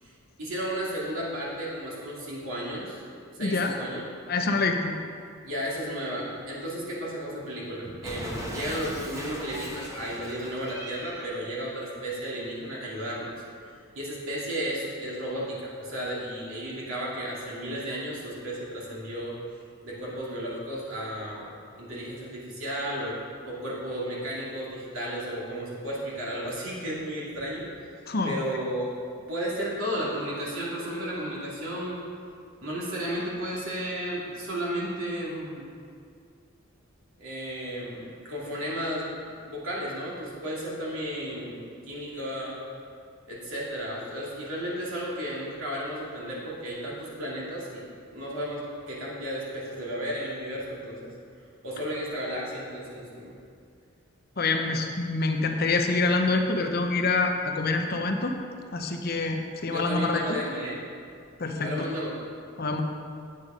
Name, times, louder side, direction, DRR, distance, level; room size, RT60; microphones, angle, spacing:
voice 1, 0.4-3.0 3.3-4.0 5.4-13.3 13.9-19.4 19.8-23.2 23.5-27.7 28.2-28.9 29.3-32.0 32.6-35.7 37.2-42.6 43.3-51.1 51.6-53.3 59.7-60.8 61.6-62.1, equal, 70° right, -6 dB, 2.7 m, -33 dB
voice 2, 3.4-3.8 4.3-4.9 28.1-28.3 54.4-58.4 58.7-60.2 61.4-61.9 62.6-62.8, left 3 dB, 45° left, 4 dB, 0.7 m, -26 dB
Cat, 8.0-11.3, equal, 15° right, 0.9 m, -38 dB
8.6 x 8.3 x 5.1 m, 2.3 s
head